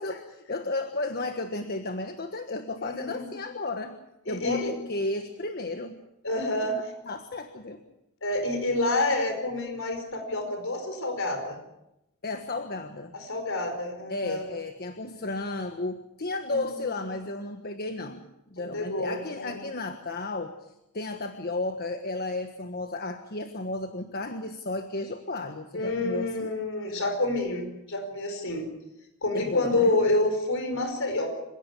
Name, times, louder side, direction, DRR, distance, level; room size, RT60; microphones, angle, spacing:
voice 1, 0.0-4.0 4.3-6.0 6.6-7.8 12.2-13.1 14.1-18.2 18.5-20.6 20.9-26.5 29.3-30.0, left 2 dB, 45° left, 7 dB, 1.5 m, -33 dB
voice 2, 2.8-3.3 4.3-4.7 6.2-6.8 8.2-11.6 13.1-14.4 16.5-16.7 18.7-19.6 25.7-28.7 29.2-31.3, left 2 dB, 65° left, 5 dB, 5.0 m, -28 dB
27.0 x 17.0 x 8.4 m, 0.88 s
head